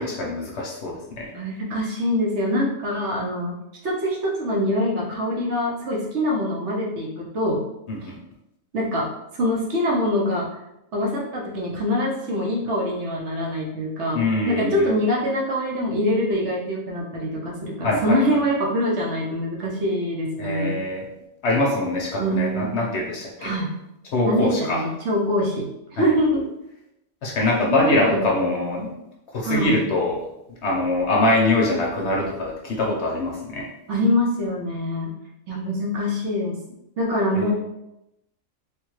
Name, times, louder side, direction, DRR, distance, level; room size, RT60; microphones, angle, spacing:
voice 1, 0.0-1.3 7.9-8.1 14.1-14.9 17.8-18.2 20.4-21.1 21.4-23.5 24.1-24.8 26.0-26.2 27.2-28.9 29.3-30.2 30.6-33.7 37.3-37.5, left 2 dB, 60° left, -2 dB, 0.8 m, -23 dB
voice 2, 1.3-3.6 3.8-7.6 8.7-9.1 9.4-10.5 10.9-20.8 22.2-22.8 23.4-23.7 24.2-26.4 27.6-28.8 29.4-29.9 33.9-35.1 35.5-36.6 37.0-37.5, equal, 60° right, -3 dB, 0.9 m, -24 dB
3.4 x 2.2 x 3.1 m, 0.88 s
omnidirectional pair, 1.5 m